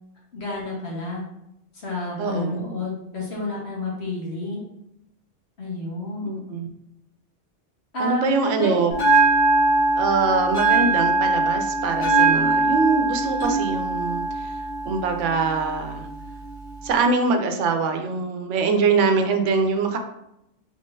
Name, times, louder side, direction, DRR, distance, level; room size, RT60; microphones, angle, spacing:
voice 1, 0.3-1.2 1.7-4.6 5.6-6.4 7.9-8.7, left 2 dB, 60° left, -4 dB, 1.5 m, -29 dB
voice 2, 2.2-2.6 6.2-6.7 8.0-8.9 10.0-14.5 14.9-16.1 16.8-20.0, right 4 dB, 80° right, 5 dB, 0.9 m, -23 dB
Bell, 8.9-16.9, right 3 dB, 40° left, 1.3 m, -22 dB
3.6 x 3.5 x 2.6 m, 0.83 s
omnidirectional pair, 1.2 m